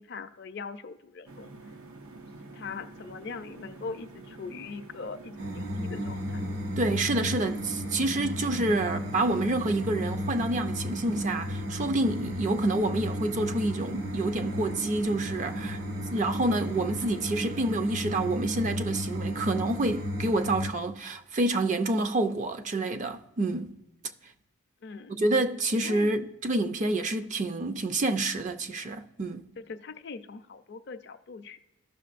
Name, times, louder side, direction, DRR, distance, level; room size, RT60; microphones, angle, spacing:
voice 1, 0.0-1.5 2.5-6.5 24.8-25.2 25.8-26.1 29.6-31.6, left 4 dB, 50° left, 0.4 m, -41 dB
sound 1, 1.3-17.7, right 2 dB, 90° right, 0.7 m, -47 dB
sound 2, 5.4-20.7, equal, 60° right, 1.4 m, -34 dB
voice 2, 6.8-15.8 16.1-23.8 25.1-29.5, right 2 dB, 35° right, 0.4 m, -28 dB
14.5 x 6.0 x 2.5 m
head